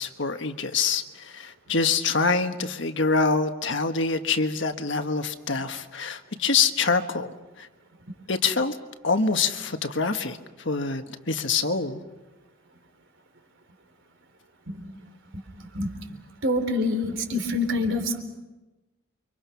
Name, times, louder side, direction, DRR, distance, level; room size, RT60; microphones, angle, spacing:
voice 1, 0.0-7.3 7.6-7.7 8.3-8.8 9.0-10.4 10.6-12.0, left 4 dB, 60° left, 6 dB, 1.5 m, -25 dB
voice 2, 16.4-18.2, left 2 dB, 65° right, 6 dB, 3.8 m, -26 dB
29.5 x 25.0 x 5.9 m, 1.1 s
head